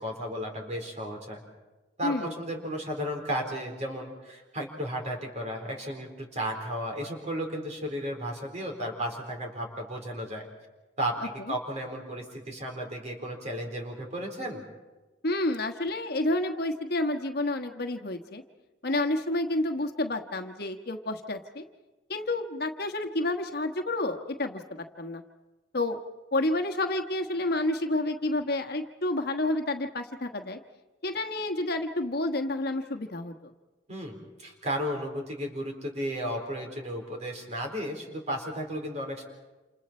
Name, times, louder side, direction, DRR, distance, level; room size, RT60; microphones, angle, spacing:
voice 1, 0.0-1.4 2.0-10.5 11.0-11.2 11.5-14.6 33.9-39.2, equal, 40° right, 2 dB, 4.1 m, -34 dB
voice 2, 2.0-2.3 11.4-11.5 15.2-18.4 18.8-21.6 22.1-25.2 25.7-26.0 26.3-30.6 31.0-33.5, left 2 dB, 60° left, 5 dB, 1.3 m, -29 dB
28.5 x 28.0 x 4.4 m, 1.2 s
head